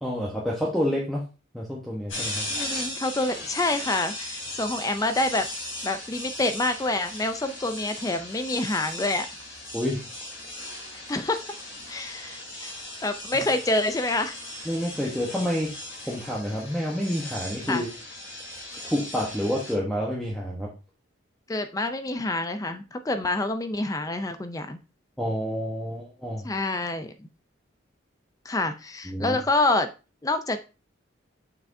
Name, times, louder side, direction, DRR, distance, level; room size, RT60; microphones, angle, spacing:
voice 1, 0.0-1.2 1.5-2.5 9.7-10.0 13.3-13.5 14.6-15.7 16.1-17.9 18.8-20.7 25.2-26.5 29.0-29.4, equal, ahead, -4 dB, 1.0 m, -28 dB
sound 1, 2.1-19.7, left 1 dB, 75° left, 3.8 m, -37 dB
voice 2, 2.5-5.5 5.8-9.3 11.1-11.6 11.9-14.4 17.7-17.8 21.5-24.8 26.4-27.3 28.5-29.9 30.2-30.6, left 2 dB, 15° left, 9 dB, 0.4 m, -27 dB
6.8 x 5.7 x 2.6 m, 0.31 s
head